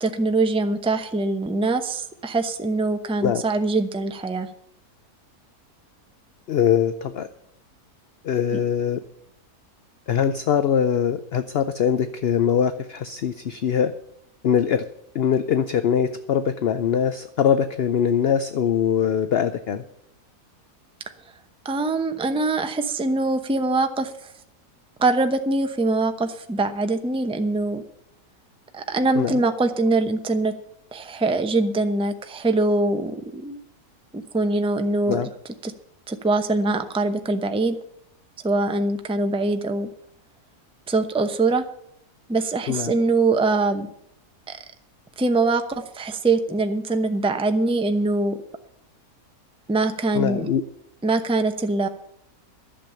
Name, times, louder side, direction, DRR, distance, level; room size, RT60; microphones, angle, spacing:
voice 1, 0.0-4.5 8.5-8.6 21.6-24.3 25.0-27.8 28.7-30.5 30.9-33.6 34.1-35.2 35.6-35.7 36.1-37.8 38.4-39.9 40.9-41.6 42.3-43.9 44.5-44.6 45.2-48.4 49.7-50.5 51.0-51.9, right 3 dB, 5° right, 8 dB, 0.5 m, -23 dB
voice 2, 6.5-7.3 8.2-9.0 10.1-13.9 14.4-14.8 15.1-19.8 29.2-29.4 35.1-35.3 42.7-42.9 50.1-50.6, left 8 dB, 60° left, 11 dB, 0.6 m, -22 dB
11.5 x 7.3 x 9.0 m, 0.73 s
omnidirectional pair, 1.6 m